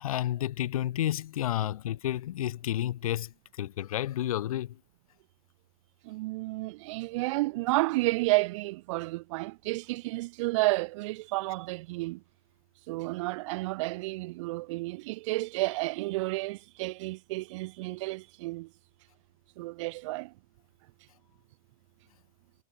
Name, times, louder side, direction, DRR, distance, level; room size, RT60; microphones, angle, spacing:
voice 1, 0.0-4.8, left 12 dB, 80° left, 3.0 m, -31 dB
voice 2, 6.0-12.2 12.9-18.7 19.6-20.3, right 21 dB, 60° right, 2.8 m, -31 dB
hypercardioid pair, 130°, 18 cm